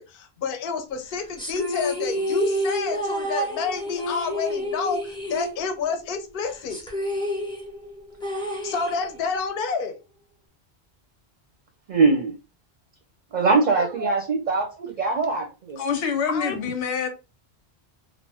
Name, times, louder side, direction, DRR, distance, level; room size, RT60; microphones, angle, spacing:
voice 1, 0.0-6.8 8.6-10.0 16.3-16.6, left 5 dB, 60° left, 0.7 m, -29 dB
sound 1, 1.4-6.0 6.3-6.4 6.7-9.4, equal, 5° left, 0.5 m, -29 dB
voice 2, 11.9-12.3 13.3-15.8, right 4 dB, 50° right, 0.6 m, -22 dB
voice 3, 15.8-17.1, left 6 dB, 90° left, 0.9 m, -26 dB
2.5 x 2.0 x 3.3 m
omnidirectional pair, 1.1 m